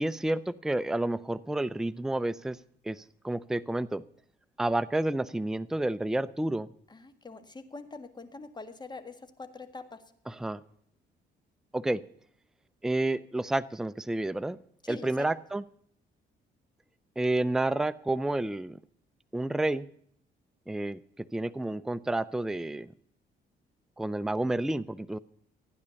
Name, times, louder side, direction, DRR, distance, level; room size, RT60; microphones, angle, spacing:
voice 1, 0.0-2.6 2.8-4.0 4.6-6.7 10.3-10.6 11.7-12.0 12.8-14.6 14.9-15.6 17.2-18.8 19.3-19.9 20.7-21.0 21.3-22.9 24.0-25.2, right 1 dB, 5° right, 15 dB, 0.5 m, -30 dB
voice 2, 6.9-10.0 14.8-15.3, left 3 dB, 20° left, 9 dB, 1.7 m, -44 dB
15.0 x 9.8 x 7.0 m, 0.66 s
cardioid pair, 90°, 20 cm